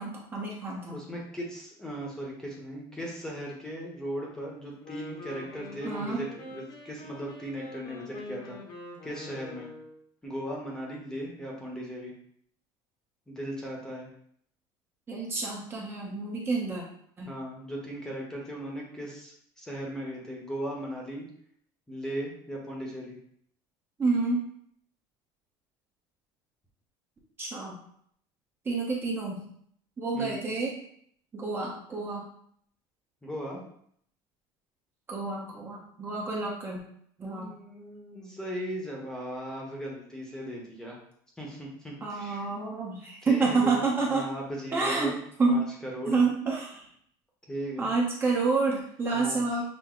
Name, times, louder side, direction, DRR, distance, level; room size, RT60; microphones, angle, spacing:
voice 1, 0.0-1.0 5.8-6.2 15.1-16.8 17.2-17.3 24.0-24.4 27.4-27.8 28.6-29.5 30.0-30.7 31.3-32.3 35.1-36.8 37.2-37.5 42.0-44.3 44.7-45.7 46.1-46.9 47.8-49.6, right 3 dB, 20° right, -3 dB, 0.8 m, -28 dB
voice 2, 0.9-8.6 9.0-9.7 10.2-12.1 13.3-14.1 17.3-21.3 21.9-23.2 30.1-30.4 33.2-33.6 37.3-41.0 41.4-42.5 43.2-45.2 45.5-46.2 47.5-47.9 49.1-49.4, equal, 5° left, -2 dB, 0.9 m, -37 dB
Wind instrument woodwind instrument, 4.7-10.0, left 2 dB, 45° left, 1.0 m, -44 dB
6.0 x 2.1 x 3.7 m, 0.66 s
cardioid pair, 150°, 10 cm